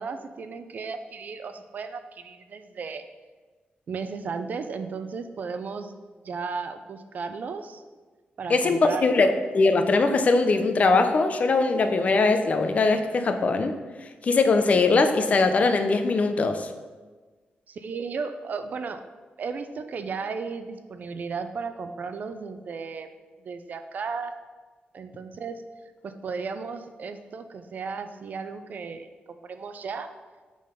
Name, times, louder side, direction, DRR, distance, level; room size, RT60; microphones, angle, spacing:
voice 1, 0.0-3.0 3.9-5.9 6.2-7.8 8.4-9.1 17.7-19.0 19.4-23.1 23.4-24.3 24.9-25.6 26.0-30.1, right 5 dB, 55° right, 9 dB, 0.5 m, -35 dB
voice 2, 8.5-9.3 9.5-13.8 14.2-16.7, left 3 dB, 45° left, 8 dB, 0.6 m, -21 dB
8.5 x 3.9 x 5.2 m, 1.3 s
wide cardioid pair, 145°, 3 cm